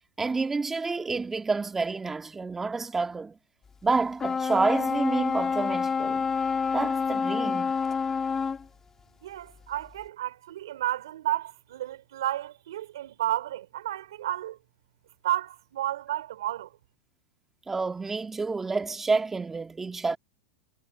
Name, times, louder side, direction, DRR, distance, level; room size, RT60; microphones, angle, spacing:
voice 1, 0.2-3.4 3.8-6.3 6.7-7.7 17.7-20.2, right 4 dB, 15° right, 1.8 m, -29 dB
sound 1, 4.2-8.6, left 5 dB, 20° left, 1.8 m, -28 dB
voice 2, 9.2-14.6 15.2-16.7, right 13 dB, 80° right, 3.4 m, -32 dB
hypercardioid pair, 120°, 2 cm